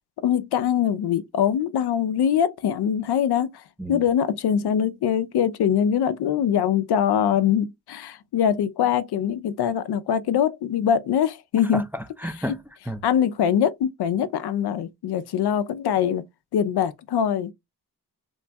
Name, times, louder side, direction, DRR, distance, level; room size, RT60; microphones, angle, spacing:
voice 1, 0.2-3.6 3.9-11.8 13.0-16.2 16.5-17.5, left 9 dB, 80° left, 0.5 m, -23 dB
voice 2, 11.7-12.6 12.9-13.0, equal, 5° right, 0.4 m, -31 dB
3.0 x 2.2 x 2.6 m
cardioid pair, 70°, 39 cm